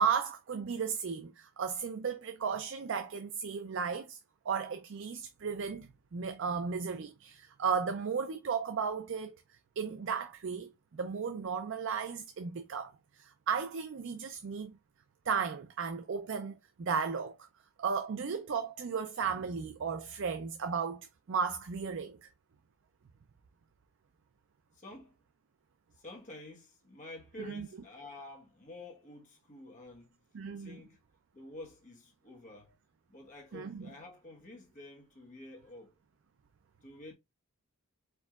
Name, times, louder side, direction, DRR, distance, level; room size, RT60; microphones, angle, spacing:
voice 1, 0.0-4.2 4.5-9.4 9.8-14.8 15.3-17.4 17.8-22.3 27.6-27.7 30.3-30.8 33.5-33.9, right 6 dB, 55° right, 0.4 m, -35 dB
voice 2, 24.7-25.1 25.9-30.2 30.6-31.0 31.3-32.8 33.1-35.9 36.8-37.1, left 1 dB, 35° left, 1.2 m, -49 dB
4.6 x 4.4 x 2.3 m
head